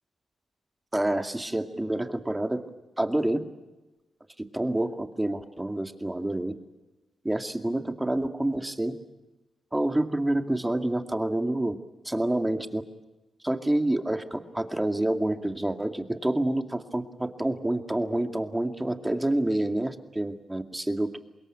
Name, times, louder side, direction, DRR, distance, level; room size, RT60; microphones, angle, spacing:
voice 1, 0.9-2.6 3.0-3.4 4.5-6.5 7.2-8.9 9.7-11.7 12.0-12.8 13.4-21.2, right 1 dB, 15° right, 7 dB, 2.3 m, -28 dB
25.0 x 21.5 x 8.8 m, 1.1 s
supercardioid pair, 45°, 0 cm